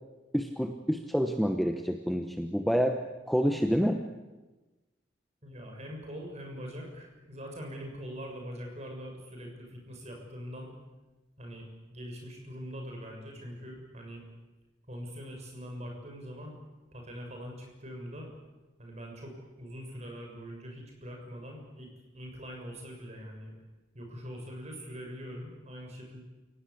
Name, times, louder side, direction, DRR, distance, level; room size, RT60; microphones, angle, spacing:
voice 1, 0.3-4.0, equal, ahead, 5 dB, 1.1 m, -28 dB
voice 2, 5.4-10.7 11.4-14.2 14.9-16.5 16.9-18.3 18.8-21.9 22.1-23.5 23.9-26.2, equal, 35° right, 1 dB, 6.8 m, -43 dB
29.0 x 17.0 x 8.6 m, 1.2 s
head